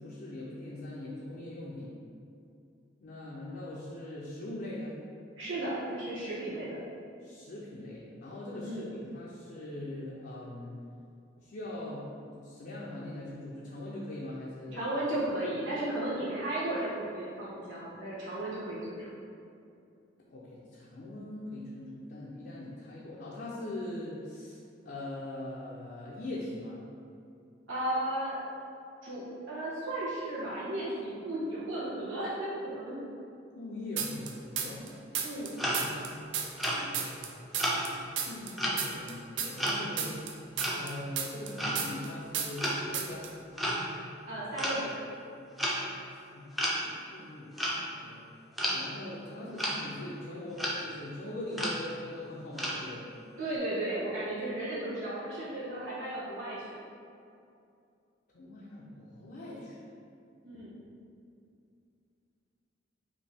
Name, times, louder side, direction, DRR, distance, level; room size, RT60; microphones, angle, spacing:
voice 1, 0.0-2.0 3.0-5.0 7.2-10.8 11.4-14.9 20.3-24.6 24.8-26.8 33.5-34.8 38.3-40.2 40.7-43.3 46.3-48.2 48.7-53.0 58.3-59.8, left 1 dB, 55° left, -6 dB, 0.5 m, -41 dB
voice 2, 5.4-6.8 8.6-8.8 14.7-19.1 27.7-28.4 29.0-33.0 35.2-35.6 44.3-44.9 53.4-56.8 60.4-60.7, right 1 dB, 90° right, -9 dB, 1.1 m, -34 dB
sound 1, 34.0-34.9 35.1-37.9 38.2-42.1 42.3-42.7 42.9-43.3, right 7 dB, 70° right, 0.4 m, -33 dB
sound 2, 34.9-35.0 35.6-36.0 36.6-37.2 37.6-37.9 38.6-39.1 39.6-40.0 40.6-40.9 41.6-41.9 42.6-42.9 43.5-43.9 44.6-44.8 45.6-45.8 46.6-46.8 47.6-47.8 48.6-48.8 49.6-49.8 50.6-50.8 51.5-51.8 52.6-52.8, equal, ahead, 0.6 m, -32 dB
5.2 x 2.7 x 3.4 m, 2.5 s
head